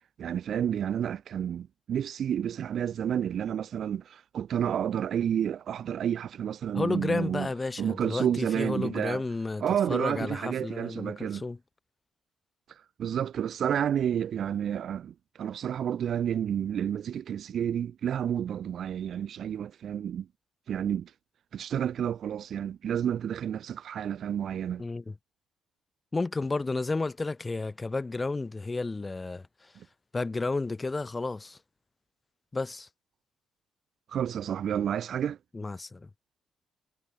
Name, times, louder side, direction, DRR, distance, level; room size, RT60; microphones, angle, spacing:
voice 1, 0.2-7.5 7.8-9.2 9.6-11.4 12.7-20.3 20.7-21.1 21.5-24.8 34.1-35.4, right 9 dB, 65° right, 0.8 m, -30 dB
voice 2, 6.7-11.6 24.8-25.1 26.1-29.7 30.1-31.6 32.5-32.9 35.5-36.1, left 3 dB, 20° left, 2.2 m, -32 dB
cardioid pair, 90°, 0 cm